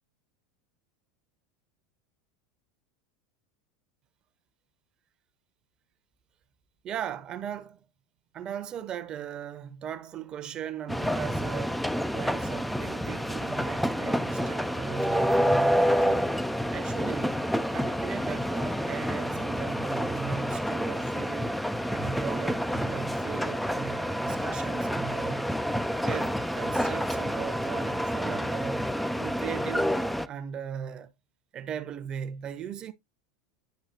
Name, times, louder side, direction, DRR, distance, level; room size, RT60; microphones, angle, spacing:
voice 1, 6.8-7.9 8.3-11.9 12.1-16.4 16.7-17.4 17.7-21.6 21.9-25.6 26.0-29.9 30.3-31.1 31.5-32.9, right 8 dB, 35° right, 1.1 m, -38 dB
sound 1, 10.9-30.3, equal, ahead, 0.6 m, -28 dB
10.5 x 5.6 x 2.8 m
hypercardioid pair, 85°, 2 cm